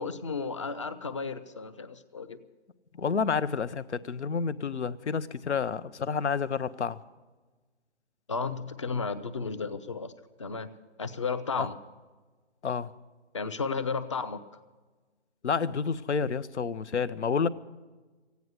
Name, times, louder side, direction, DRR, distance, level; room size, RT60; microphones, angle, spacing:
voice 1, 0.0-2.4 8.3-10.1 10.4-10.7 11.0-11.8 13.3-14.4, left 4 dB, 25° left, 12 dB, 0.6 m, -33 dB
voice 2, 3.0-7.0 11.6-11.7 12.6-12.9 15.4-17.5, left 5 dB, 80° left, 16 dB, 0.8 m, -29 dB
15.5 x 9.4 x 9.5 m, 1.3 s
hypercardioid pair, 165°, 34 cm